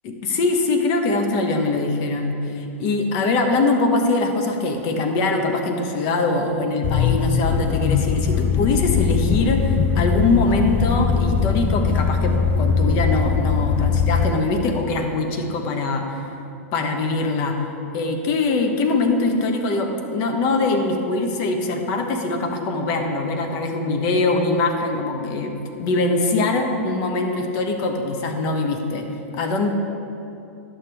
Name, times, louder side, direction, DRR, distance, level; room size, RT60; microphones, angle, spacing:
voice 1, 0.0-16.2 16.7-17.6 17.9-29.1 29.3-29.7, left 3 dB, 45° left, 4 dB, 1.1 m, -22 dB
sound 1, 6.8-14.3, left 6 dB, 25° left, 0.4 m, -21 dB
10.5 x 6.8 x 3.4 m, 2.8 s
hypercardioid pair, 110°, 8 cm